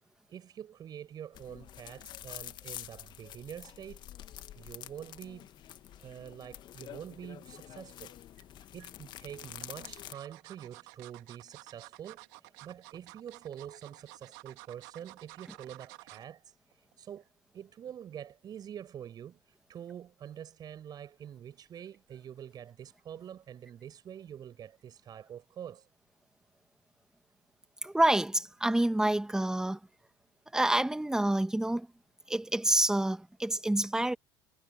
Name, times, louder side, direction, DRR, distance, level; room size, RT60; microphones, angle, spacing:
voice 1, 0.3-4.0 4.5-5.5 6.0-8.2 8.7-12.3 12.6-16.6 17.0-17.3 17.5-25.9, right 9 dB, 40° right, 6.4 m, -46 dB
sound 1, 1.3-10.1, left 12 dB, 45° left, 1.9 m, -47 dB
sound 2, 8.4-8.9 9.6-16.3 16.7-16.9 17.2-17.3, right 30 dB, 65° right, 2.6 m, -52 dB
voice 2, 27.8-29.8 30.5-31.9 32.3-34.1, right 1 dB, 5° right, 2.2 m, -27 dB
figure-of-eight pair, 70°, 11 cm